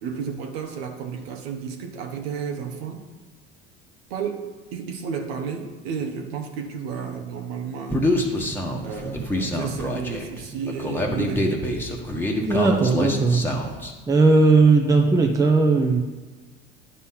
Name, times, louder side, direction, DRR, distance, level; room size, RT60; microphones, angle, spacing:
voice 1, 0.0-3.0 4.1-8.1 8.8-11.9, right 6 dB, 80° right, 4 dB, 0.9 m, -32 dB
Human voice, 7.9-13.9, left 1 dB, 5° left, 1.3 m, -26 dB
voice 2, 12.4-13.5 14.1-16.0, right 3 dB, 10° right, 2 dB, 0.8 m, -18 dB
9.9 x 4.2 x 5.7 m, 1.3 s
hypercardioid pair, 85°, 30 cm